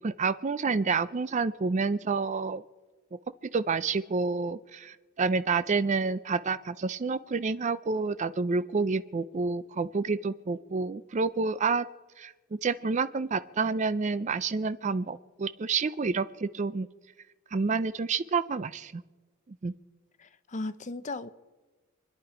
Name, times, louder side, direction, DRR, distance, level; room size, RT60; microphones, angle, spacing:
voice 1, 0.0-2.6 3.5-11.9 12.2-12.3 12.6-16.9 17.5-19.0 19.6-19.7, right 4 dB, 35° right, 0.4 m, -29 dB
voice 2, 20.2-21.3, left 2 dB, 35° left, 0.7 m, -36 dB
26.5 x 10.5 x 4.9 m
head